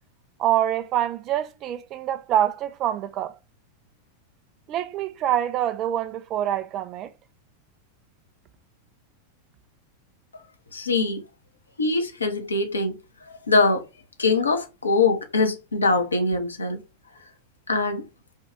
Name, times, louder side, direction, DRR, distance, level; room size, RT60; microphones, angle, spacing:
voice 1, 0.4-3.3 4.7-7.1, right 11 dB, 35° right, 0.4 m, -25 dB
voice 2, 10.7-11.2 11.8-13.8 14.2-16.8 17.7-18.0, left 3 dB, 75° left, 0.8 m, -23 dB
4.5 x 2.3 x 3.6 m
figure-of-eight pair, 90°, 0 cm